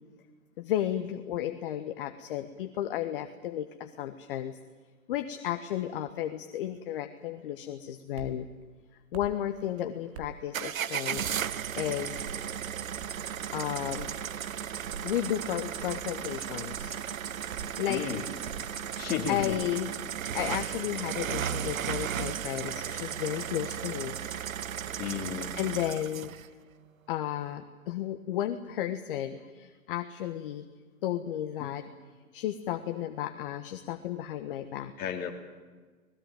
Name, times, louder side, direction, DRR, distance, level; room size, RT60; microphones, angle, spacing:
voice 1, 0.6-4.6 5.1-8.5 9.1-12.2 13.5-14.1 15.0-17.0 17.8-18.0 19.3-19.9 20.3-24.1 25.6-26.3 27.1-30.6 31.0-31.9 32.3-34.9, left 11 dB, 40° left, 8 dB, 1.3 m, -33 dB
sound 1, 8.2-8.4 9.1-9.4 10.1-10.4 11.1-11.4 12.2-12.4 13.0-13.3 13.9-14.2 14.8-15.1 15.8-16.1 16.7-17.0 17.5-17.8 18.4-18.7 19.4-19.7 20.3-20.6, right 6 dB, 45° right, 2.5 m, -44 dB
sound 2, 10.5-26.5, right 9 dB, 70° right, 1.1 m, -35 dB
voice 2, 17.9-18.2 19.0-19.6 25.0-25.5 31.6-31.7 35.0-35.3, left 8 dB, 20° left, 2 dB, 3.1 m, -33 dB
25.5 x 20.0 x 9.0 m, 1.4 s
hypercardioid pair, 135°, 42 cm